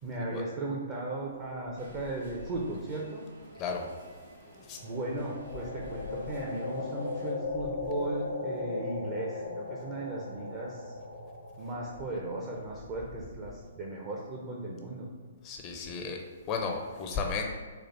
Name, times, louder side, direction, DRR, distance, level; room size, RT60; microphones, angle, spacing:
voice 1, 0.0-3.2 4.8-10.9 11.6-15.1, right 2 dB, 30° right, -3 dB, 0.6 m, -36 dB
sound 1, 1.8-7.3, equal, 75° right, 1.4 m, -54 dB
sound 2, 4.7-12.7, left 3 dB, 90° left, 0.8 m, -38 dB
voice 2, 15.4-16.2 16.5-17.5, left 5 dB, 30° left, 2 dB, 0.4 m, -33 dB
4.3 x 2.4 x 4.5 m, 1.5 s
figure-of-eight pair, 125°, 0 cm